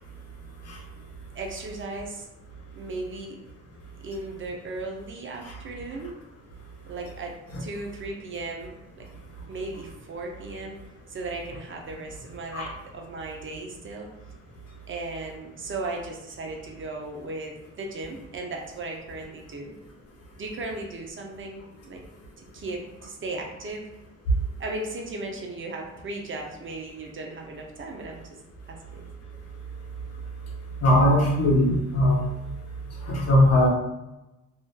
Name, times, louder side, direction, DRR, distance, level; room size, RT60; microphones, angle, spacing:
voice 1, 1.3-2.3 2.7-3.4 4.0-6.1 6.8-9.1 9.5-10.8 11.1-14.1 14.9-19.7 20.4-22.0 22.4-23.9 24.6-28.2 28.7-29.0, right 2 dB, 40° right, 1 dB, 0.5 m, -36 dB
voice 2, 30.8-32.2 33.0-33.7, left 1 dB, 55° left, -3 dB, 0.9 m, -20 dB
2.5 x 2.4 x 2.2 m, 0.97 s
cardioid pair, 90°, 30 cm